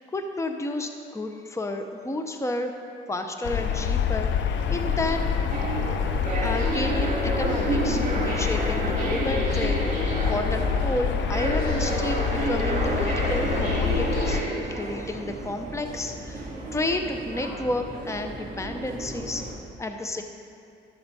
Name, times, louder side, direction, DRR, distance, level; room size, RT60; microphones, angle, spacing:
voice 1, 0.1-2.8 3.1-5.3 6.4-14.4 14.7-19.5 19.8-20.2, left 2 dB, 15° left, 6 dB, 0.7 m, -31 dB
sound 1, 3.4-14.4, left 7 dB, 65° left, 0.6 m, -27 dB
sound 2, 4.5-19.5, right 2 dB, 40° right, 2.6 m, -30 dB
13.0 x 6.9 x 4.1 m, 2.6 s
cardioid pair, 90°, 20 cm